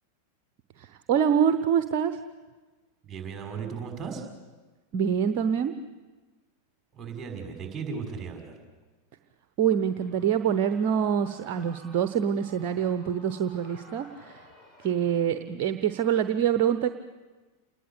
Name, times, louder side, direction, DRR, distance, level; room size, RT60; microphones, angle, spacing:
voice 1, 0.8-2.2 4.9-5.7 9.6-14.5 14.8-16.9, right 8 dB, 45° right, 10 dB, 0.9 m, -25 dB
voice 2, 3.0-4.2 6.9-8.6, right 6 dB, 20° right, 3 dB, 5.7 m, -36 dB
Shout / Cheering, 9.9-15.3, equal, 20° left, 6.4 m, -54 dB
28.0 x 20.0 x 8.6 m, 1.3 s
figure-of-eight pair, 90°, 0 cm